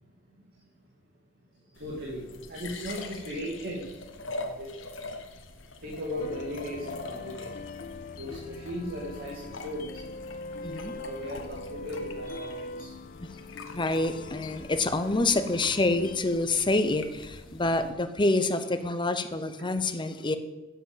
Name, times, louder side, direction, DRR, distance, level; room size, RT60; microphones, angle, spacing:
sound 1, 1.8-17.9, left 2 dB, 80° left, 1.2 m, -44 dB
voice 1, 1.8-3.9 4.4-4.8 5.8-7.5 8.2-10.0 10.8-12.9 17.5-17.6, equal, 50° right, -2 dB, 2.2 m, -37 dB
sound 2, 6.2-16.2, left 2 dB, 45° left, 0.4 m, -42 dB
voice 2, 10.6-10.9 13.7-20.4, left 2 dB, 25° left, 10 dB, 0.8 m, -27 dB
10.0 x 8.0 x 8.0 m, 1.1 s
head